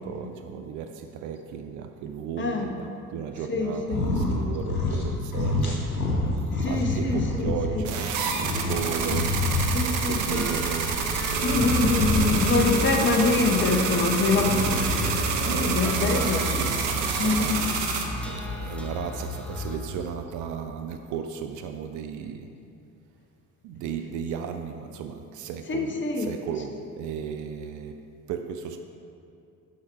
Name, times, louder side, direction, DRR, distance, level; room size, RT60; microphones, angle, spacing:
voice 1, 0.0-6.0 6.4-9.4 9.8-11.1 15.4-17.7 18.2-22.5 23.6-28.0 28.3-28.8, right 7 dB, 45° right, 6 dB, 0.5 m, -35 dB
voice 2, 2.4-2.7 3.5-4.0 6.6-7.5 9.7-10.4 11.4-15.0 15.5-16.4 17.2-17.6 25.7-26.3, left 3 dB, 25° left, 2 dB, 1.0 m, -25 dB
sound 1, 3.8-4.4 4.6-5.1 5.3-7.7 8.1-10.1 11.4-12.8 14.3-15.3, left 2 dB, 85° left, 0.9 m, -27 dB
sound 2, 7.8-18.0, right 5 dB, 65° right, 0.8 m, -28 dB
sound 3, 10.3-19.8, left 1 dB, 5° left, 0.9 m, -34 dB
7.5 x 5.8 x 4.4 m, 2.5 s
figure-of-eight pair, 50°, 42 cm